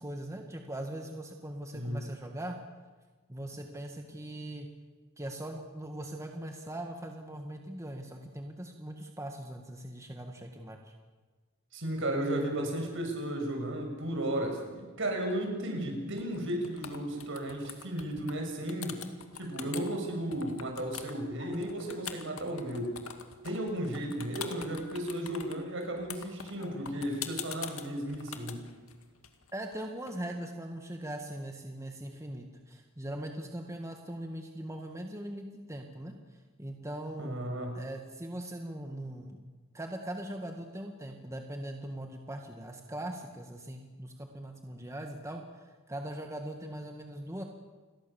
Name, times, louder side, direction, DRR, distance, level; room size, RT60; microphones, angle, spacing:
voice 1, 0.0-2.6 3.3-4.7 5.2-10.9 29.5-36.1 36.6-37.4 37.7-39.4 39.7-47.4, right 1 dB, 15° right, 3 dB, 1.9 m, -40 dB
voice 2, 11.7-19.0 19.3-22.9 23.4-28.6 37.2-37.8, right 1 dB, 65° right, 3 dB, 6.8 m, -34 dB
sound 1, 16.2-16.4 16.6-18.4 18.7-19.9 20.3-30.1, left 8 dB, 90° left, 2.2 m, -43 dB
sound 2, 21.4-22.0 24.4-24.6 26.5-26.7, left 2 dB, 60° left, 5.4 m, -49 dB
29.5 x 22.0 x 7.2 m, 1.3 s
head